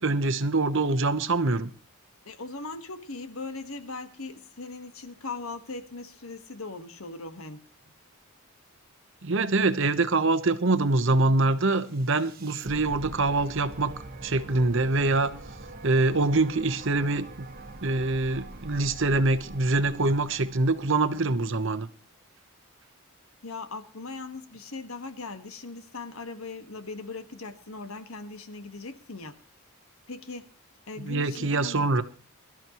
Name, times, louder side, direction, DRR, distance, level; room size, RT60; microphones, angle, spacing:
voice 1, 0.0-1.7 9.2-13.9 14.2-15.3 15.8-17.5 17.8-21.9 31.0-32.0, right 2 dB, 60° right, 1.0 m, -24 dB
voice 2, 2.2-7.6 23.4-29.4 30.1-30.5 30.9-31.8, left 3 dB, 80° left, 1.6 m, -39 dB
sound 1, 11.7-21.9, right 2 dB, 45° right, 1.4 m, -44 dB
23.0 x 13.0 x 3.1 m
head